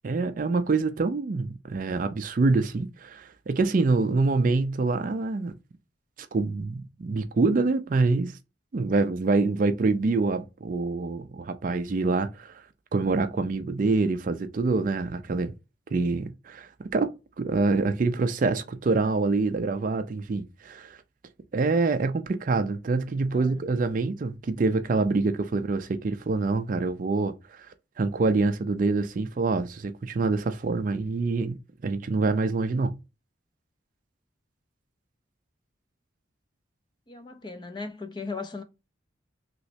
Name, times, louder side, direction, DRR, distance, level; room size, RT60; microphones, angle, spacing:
voice 1, 0.0-5.5 6.2-8.3 8.7-12.5 12.9-15.5 15.9-21.0 21.5-27.7 28.0-32.9, right 3 dB, 45° right, 0.3 m, -26 dB
voice 2, 23.3-23.6 37.1-38.6, left 4 dB, 20° left, 0.4 m, -37 dB
3.1 x 3.0 x 2.7 m
head